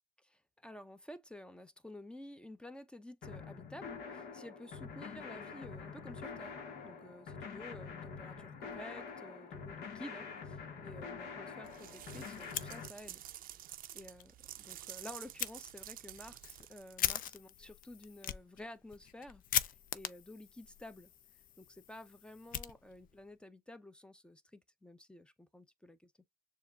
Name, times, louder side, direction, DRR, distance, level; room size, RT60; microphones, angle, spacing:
voice 1, 0.2-6.6 6.8-13.2 13.9-21.1 21.6-26.1, left 1 dB, 5° left, 0.6 m, -52 dB
sound 1, 3.2-12.9, left 5 dB, 70° left, 1.3 m, -46 dB
sound 2, 11.6-17.2, right 12 dB, 55° right, 0.5 m, -50 dB
Fire, 12.4-13.3 13.6-13.7 14.2-14.3 15.4-15.5 16.1-23.2, left 10 dB, 55° left, 0.5 m, -40 dB
6.9 x 2.5 x 2.3 m
cardioid pair, 110°, 17 cm